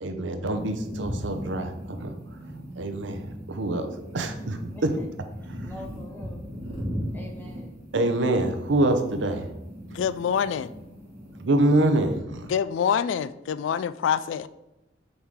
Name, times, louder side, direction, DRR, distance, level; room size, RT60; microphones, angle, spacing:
voice 1, 0.0-2.1 2.8-3.2 3.5-5.0 7.9-9.4 11.4-12.5, right 1 dB, 80° right, 7 dB, 0.7 m, -25 dB
sound 1, 0.5-12.2, equal, 30° right, 2.3 m, -38 dB
voice 2, 4.6-5.0 5.6-6.4 6.9-7.8, left 1 dB, 10° left, -1 dB, 1.2 m, -44 dB
voice 3, 9.9-10.7 12.5-14.5, left 7 dB, 80° left, 16 dB, 0.3 m, -26 dB
6.3 x 4.8 x 3.6 m, 0.93 s
head